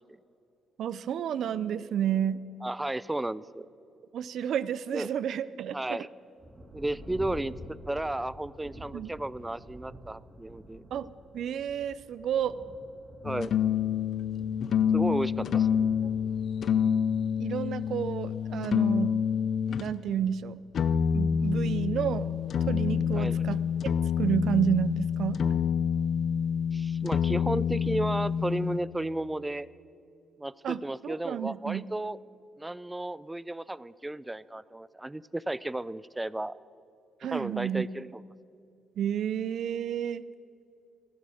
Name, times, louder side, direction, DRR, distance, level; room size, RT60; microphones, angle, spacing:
voice 1, 0.8-2.4 4.1-6.0 8.9-9.1 10.9-11.1 11.3-12.6 15.4-15.5 16.0-16.1 17.4-19.2 19.8-20.6 21.1-22.3 22.7-25.4 30.6-31.9 37.2-37.9 39.0-40.3, right 9 dB, 70° right, 17 dB, 0.5 m, -31 dB
voice 2, 2.6-3.7 4.9-5.1 5.7-6.1 6.7-10.8 13.2-13.6 14.9-15.9 23.1-23.4 26.7-29.7 30.4-32.2 32.6-36.6 37.3-38.2, right 1 dB, 10° right, 19 dB, 0.4 m, -33 dB
Thunder, 6.4-22.4 23.2-23.3 23.8-24.3, right 1 dB, 30° right, 3.1 m, -50 dB
sound 1, 13.2-19.9 20.7-28.8, left 7 dB, 60° left, 0.6 m, -27 dB
15.5 x 11.0 x 6.4 m, 2.6 s
cardioid pair, 90°, 0 cm